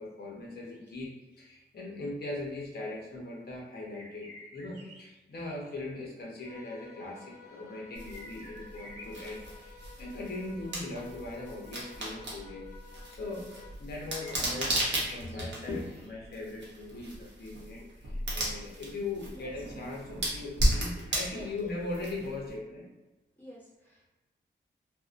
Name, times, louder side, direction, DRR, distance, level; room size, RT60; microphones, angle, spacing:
voice 1, 0.0-12.7 13.1-13.5 13.8-22.9, left 2 dB, 55° left, -3 dB, 0.7 m, -40 dB
sound 1, 0.7-1.4 3.9-5.7 6.0-6.1 6.4-6.5 8.0-10.4 10.6-10.7 14.1-16.4, left 1 dB, 15° right, 0.9 m, -51 dB
sound 2, 6.4-13.9, left 5 dB, 40° left, 1.0 m, -54 dB
sound 3, 7.9-22.5, right 1 dB, 70° right, 0.7 m, -35 dB
voice 2, 21.3-21.7 22.3-22.5 23.4-24.1, equal, 10° left, -8 dB, 0.9 m, -51 dB
2.6 x 2.1 x 2.4 m, 1.1 s
wide cardioid pair, 175°, 19 cm